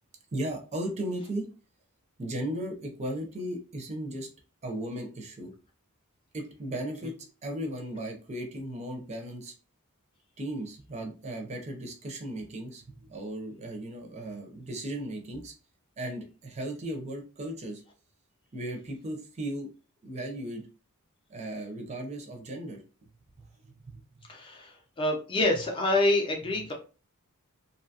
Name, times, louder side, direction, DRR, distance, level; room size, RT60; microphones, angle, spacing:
voice 1, 0.3-1.5 2.2-4.3 4.6-5.5 6.3-7.2 7.4-9.5 10.4-15.5 16.0-17.8 18.5-19.7 20.0-20.6 21.3-22.8 23.4-24.0, right 1 dB, 30° right, 4 dB, 0.5 m, -36 dB
voice 2, 24.3-26.7, left 2 dB, 25° left, 0 dB, 0.5 m, -27 dB
2.7 x 2.2 x 2.7 m, 0.36 s
head